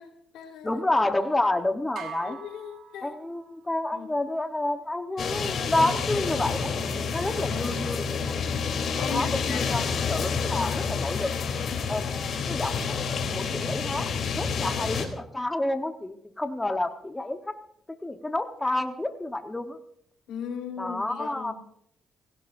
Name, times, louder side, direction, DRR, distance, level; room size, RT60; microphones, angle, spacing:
voice 1, 0.0-0.8 2.2-3.1 3.9-4.1 5.7-6.5 7.4-7.8 9.0-9.9 10.5-10.9 20.3-21.5, left 7 dB, 90° left, 4 dB, 3.8 m, -38 dB
voice 2, 0.6-2.4 3.0-6.9 7.1-8.0 8.9-11.3 11.9-12.1 12.5-12.9 13.3-14.1 14.4-17.5 18.0-19.8 20.8-21.5, left 2 dB, 15° left, 6 dB, 1.1 m, -29 dB
sound 1, 1.9-3.7, right 7 dB, 70° right, 3.3 m, -42 dB
sound 2, 5.2-15.1, left 5 dB, 60° left, 3.4 m, -29 dB
28.5 x 16.5 x 2.6 m, 0.70 s
cardioid pair, 90°, 0 cm